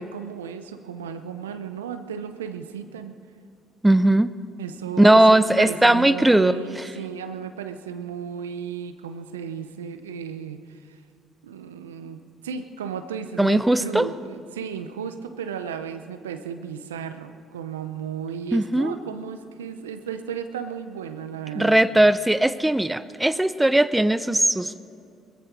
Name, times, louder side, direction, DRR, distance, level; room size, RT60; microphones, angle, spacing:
voice 1, 0.0-3.2 4.6-5.2 5.6-11.0 11.4-21.8, right 7 dB, 85° right, 10 dB, 0.7 m, -34 dB
voice 2, 3.8-4.3 5.0-6.9 13.4-14.1 18.5-18.9 21.5-24.8, right 1 dB, 10° right, 15 dB, 0.6 m, -18 dB
21.0 x 14.5 x 4.7 m, 2.5 s
hypercardioid pair, 50°, 0 cm